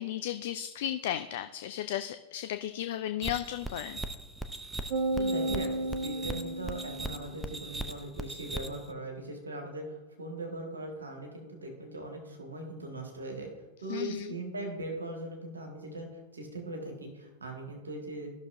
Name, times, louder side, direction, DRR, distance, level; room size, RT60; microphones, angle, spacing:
voice 1, 0.0-4.0 13.9-14.4, left 11 dB, 55° left, 9 dB, 0.3 m, -35 dB
sound 1, 3.2-8.9, right 1 dB, 5° right, 0.6 m, -39 dB
sound 2, 4.9-7.4, right 2 dB, 45° right, 1.1 m, -32 dB
voice 2, 5.1-5.7 6.0-9.8 10.2-13.5 13.8-16.1 16.3-18.3, right 2 dB, 75° right, 1 dB, 1.6 m, -40 dB
14.5 x 6.1 x 2.6 m, 1.1 s
figure-of-eight pair, 90°, 0 cm